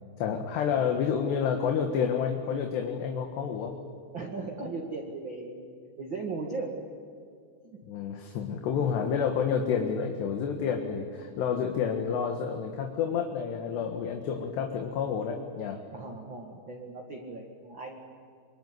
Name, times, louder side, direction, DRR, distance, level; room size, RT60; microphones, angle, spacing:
voice 1, 0.2-3.8 7.9-15.8, left 7 dB, 70° left, 3 dB, 3.5 m, -29 dB
voice 2, 4.1-6.8 7.6-7.8 15.9-18.0, right 3 dB, 45° right, 1 dB, 1.7 m, -37 dB
25.5 x 23.0 x 9.7 m, 2.3 s
omnidirectional pair, 5.3 m